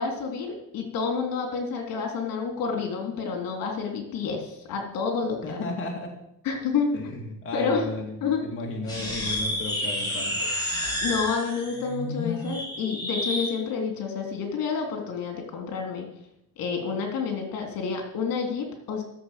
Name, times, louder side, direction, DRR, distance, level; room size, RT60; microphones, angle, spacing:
voice 1, 0.0-5.6 6.4-6.9 7.5-7.9 8.2-8.4 11.0-16.1 16.6-19.0, left 5 dB, 70° left, 3 dB, 3.3 m, -29 dB
voice 2, 5.4-6.1 6.9-10.4, left 2 dB, 35° left, 0 dB, 2.4 m, -34 dB
sound 1, 8.8-13.5, left 1 dB, 10° left, 5.5 m, -30 dB
14.5 x 7.3 x 7.4 m, 0.81 s
cardioid pair, 125°, 35 cm